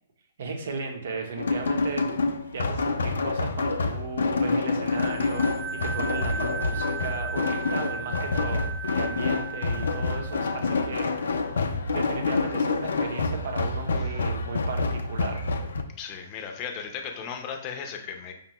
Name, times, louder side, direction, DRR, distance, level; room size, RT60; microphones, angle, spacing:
voice 1, 0.4-2.1 2.5-5.4 5.7-8.6 8.9-11.3 11.8-15.4, right 4 dB, 65° right, 3 dB, 0.8 m, -35 dB
sound 1, 1.4-15.8, left 3 dB, 75° left, 0.4 m, -27 dB
sound 2, 4.9-11.3, right 5 dB, 15° right, 0.4 m, -37 dB
voice 2, 16.0-18.3, left 7 dB, 35° left, 3 dB, 0.6 m, -36 dB
5.1 x 2.2 x 3.0 m, 0.82 s
hypercardioid pair, 125°, 0 cm